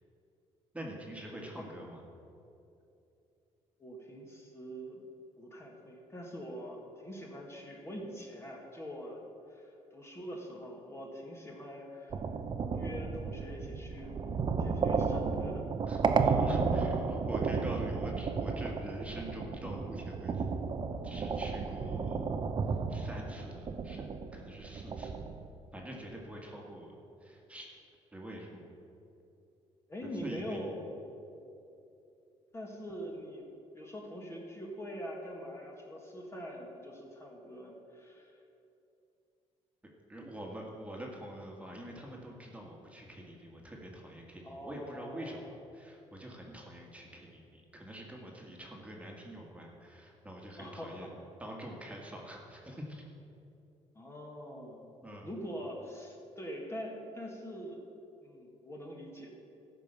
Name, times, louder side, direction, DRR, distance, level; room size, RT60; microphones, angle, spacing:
voice 1, 0.7-2.0 15.9-20.7 21.0-22.3 22.7-25.1 25.7-26.9 27.2-27.7 28.1-28.7 30.0-30.6 40.1-53.0 55.0-55.3, right 1 dB, 10° right, -1 dB, 1.7 m, -45 dB
voice 2, 1.3-1.6 3.8-5.0 5.4-12.2 12.7-14.1 14.6-15.6 29.9-30.8 32.5-33.5 33.7-38.4 44.4-45.5 50.6-51.0 53.9-54.9 55.2-57.8 58.2-59.6, equal, 20° left, -1 dB, 1.7 m, -44 dB
sound 1, 12.1-25.5, right 5 dB, 40° right, 0.7 m, -33 dB
14.0 x 5.4 x 6.8 m, 2.7 s
cardioid pair, 105°, 12 cm